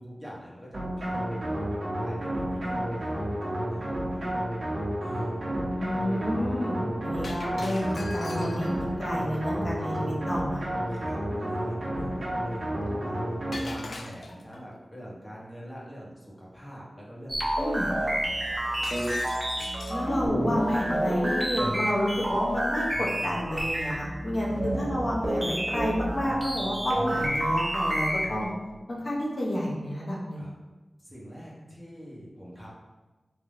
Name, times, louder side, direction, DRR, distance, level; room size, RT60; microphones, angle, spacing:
voice 1, 0.0-4.3 5.0-5.4 10.9-19.2 24.4-25.2 30.3-30.5 31.0-32.7, equal, 15° left, -5 dB, 1.2 m, -44 dB
sound 1, 0.7-13.9, right 1 dB, 75° right, 1.0 m, -31 dB
voice 2, 5.8-8.7 9.0-10.6 17.6-17.9 19.9-28.5 28.9-30.5, equal, 60° left, -4 dB, 0.9 m, -30 dB
Shatter, 7.2-8.9 13.5-14.6 18.8-20.1, left 2 dB, 85° left, 0.3 m, -41 dB
sound 2, 17.3-28.4, right 1 dB, 35° right, 0.9 m, -29 dB
3.5 x 2.8 x 3.7 m, 1.2 s
wide cardioid pair, 50°, 0 cm